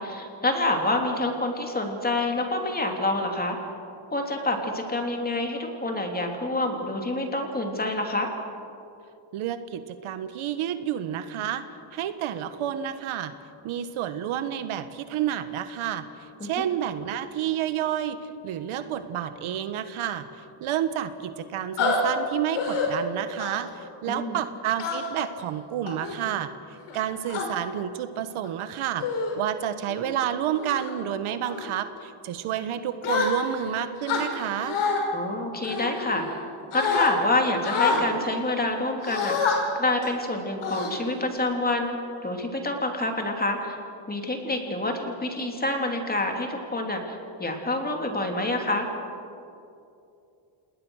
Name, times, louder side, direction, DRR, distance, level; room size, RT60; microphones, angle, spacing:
voice 1, 0.0-3.6 4.1-8.3 16.4-16.5 24.1-24.4 35.1-36.4 36.7-42.0 42.2-43.8 44.1-48.9, left 2 dB, 20° left, 3 dB, 3.3 m, -27 dB
voice 2, 9.3-11.6 11.9-13.3 13.6-34.8, right 10 dB, 75° right, 10 dB, 1.4 m, -30 dB
sound 1, 21.8-22.0 22.5-22.9 23.4-23.7 24.8-25.2 25.9-26.2 26.9-27.5 28.3-28.5 29.0-29.4 29.8-30.1 30.6-30.9 31.4-31.7 33.0-33.7 34.0-35.0 35.6-36.4 36.7-37.1 37.6-38.0 39.0-39.6 40.0-40.2 40.6-41.3, left 5 dB, 75° left, 5.3 m, -27 dB
28.5 x 20.0 x 6.5 m, 2.6 s
cardioid pair, 120°, 50 cm